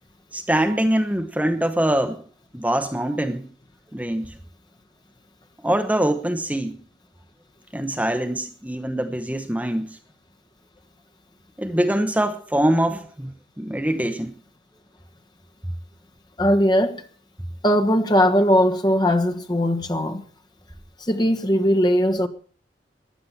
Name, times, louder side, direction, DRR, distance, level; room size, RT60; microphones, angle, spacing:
voice 1, 0.3-2.2 2.5-3.5 3.9-4.3 5.6-6.8 7.7-9.9 11.6-14.3, right 1 dB, 10° right, 0.9 m, -23 dB
voice 2, 16.4-17.0 17.6-20.2 21.0-22.3, equal, 25° left, 1.4 m, -19 dB
16.0 x 11.0 x 5.8 m
head